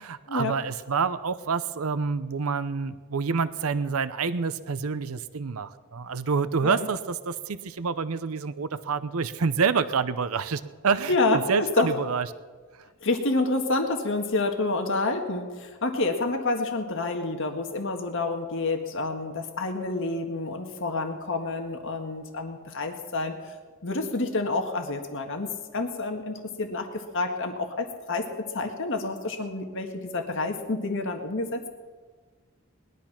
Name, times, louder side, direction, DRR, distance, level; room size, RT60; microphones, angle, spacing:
voice 1, 0.0-12.3, right 5 dB, 85° right, 13 dB, 0.7 m, -27 dB
voice 2, 11.1-11.9 13.0-23.5 23.8-31.7, left 3 dB, 60° left, 4 dB, 1.6 m, -28 dB
20.5 x 12.0 x 5.9 m, 1.5 s
head